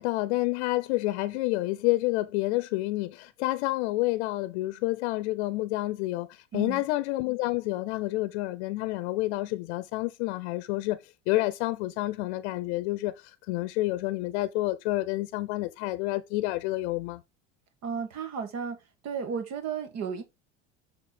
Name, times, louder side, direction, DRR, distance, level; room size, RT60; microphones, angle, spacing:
voice 1, 0.0-17.2, left 19 dB, 75° left, 0.7 m, -29 dB
voice 2, 6.5-6.8 17.8-18.8 19.0-20.2, right 6 dB, 50° right, 2.1 m, -33 dB
6.5 x 4.9 x 4.3 m
supercardioid pair, 105°, 33 cm